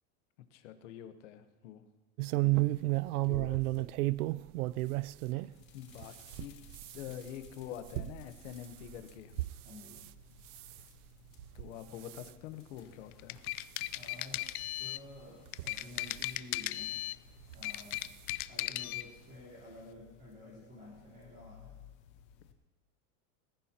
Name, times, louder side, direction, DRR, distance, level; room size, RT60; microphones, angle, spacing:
voice 1, 0.5-1.8 3.2-3.7 5.7-6.5 6.9-9.4 11.5-13.4, left 10 dB, 55° left, 9 dB, 1.1 m, -46 dB
sound 1, 2.2-5.5 6.0-10.1 10.5-10.8 11.4-11.7 12.0-12.3 12.9-13.0 13.4-13.5 14.6-14.7 15.5-16.3 17.4-17.6 18.0-18.1 18.4-18.5, right 20 dB, 85° right, 0.5 m, -33 dB
voice 2, 2.4-2.7 9.4-10.0 13.9-17.0 17.5-18.0 18.5-21.7, left 1 dB, 20° right, -8 dB, 3.4 m, -52 dB
sound 2, 5.5-22.5, left 8 dB, 25° left, 0.3 m, -60 dB
sound 3, 13.1-15.1 15.5-17.2 17.5-19.1, left 17 dB, 75° left, 0.5 m, -37 dB
21.0 x 14.5 x 2.9 m, 1.2 s
supercardioid pair, 170°, 43 cm